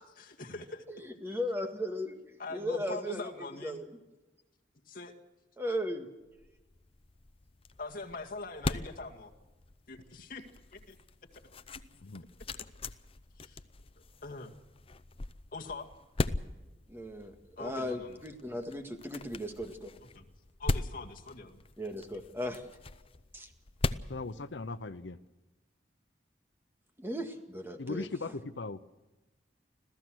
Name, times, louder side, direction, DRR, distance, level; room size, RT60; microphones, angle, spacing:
voice 1, 0.2-0.8 1.3-1.4 2.4-3.8 4.9-5.1 7.8-9.3 9.9-10.4 10.7-11.0 13.4-13.6 14.2-14.5 15.5-15.9 17.6-18.2 20.1-20.3 20.6-21.6, left 3 dB, 50° left, 1 dB, 2.1 m, -43 dB
voice 2, 0.9-2.2 2.5-3.9 5.6-6.1 16.9-19.9 21.8-22.6 23.3-23.5 27.0-28.1, equal, 15° right, 5 dB, 1.9 m, -36 dB
sound 1, 6.3-25.1, left 2 dB, 30° left, 0.6 m, -40 dB
voice 3, 24.1-25.2 27.8-28.8, left 3 dB, 75° left, 11 dB, 0.8 m, -38 dB
26.5 x 15.5 x 6.3 m, 1.1 s
head